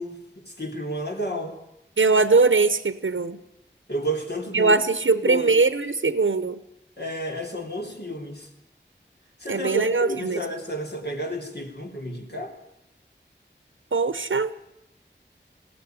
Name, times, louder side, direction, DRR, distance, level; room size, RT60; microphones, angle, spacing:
voice 1, 0.0-1.6 3.9-4.8 5.1-5.5 7.0-8.5 9.4-12.5, right 1 dB, 55° left, 2 dB, 4.0 m, -31 dB
voice 2, 2.0-3.4 4.5-6.6 9.5-10.4 13.9-14.5, right 3 dB, 90° right, 12 dB, 0.9 m, -21 dB
19.5 x 16.5 x 9.6 m, 0.87 s
wide cardioid pair, 45°, 20 cm